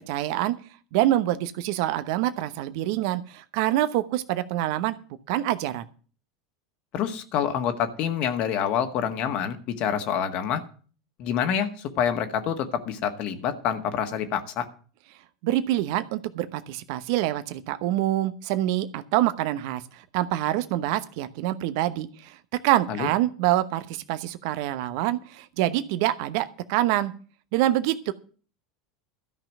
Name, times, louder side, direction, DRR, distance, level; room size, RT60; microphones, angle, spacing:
voice 1, 0.1-0.6 0.9-5.0 5.3-5.8 15.4-22.4 22.6-27.1 27.5-28.1, right 14 dB, 60° right, 12 dB, 0.9 m, -26 dB
voice 2, 6.9-10.6 11.2-14.7 22.9-23.1, left 8 dB, 50° left, 8 dB, 1.8 m, -27 dB
13.0 x 5.8 x 9.2 m, 0.40 s
hypercardioid pair, 85°, 2 cm